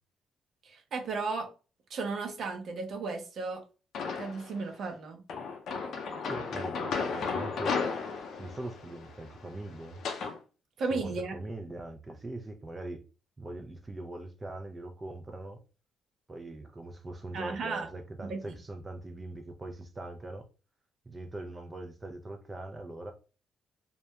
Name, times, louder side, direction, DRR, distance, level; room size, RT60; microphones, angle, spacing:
voice 1, 0.6-1.5 1.9-3.6 4.2-5.2 10.8-11.3 17.3-17.9 18.2-18.4, right 4 dB, 65° right, 3 dB, 0.6 m, -34 dB
sound 1, 3.9-4.6 5.3-10.4, left 5 dB, 70° left, 0.5 m, -34 dB
voice 2, 6.2-7.7 8.4-10.0 10.9-13.0 13.4-15.6 16.3-20.4 21.1-23.1, right 2 dB, 20° right, 3 dB, 0.3 m, -41 dB
2.2 x 2.1 x 2.7 m, 0.34 s
cardioid pair, 90°, 0 cm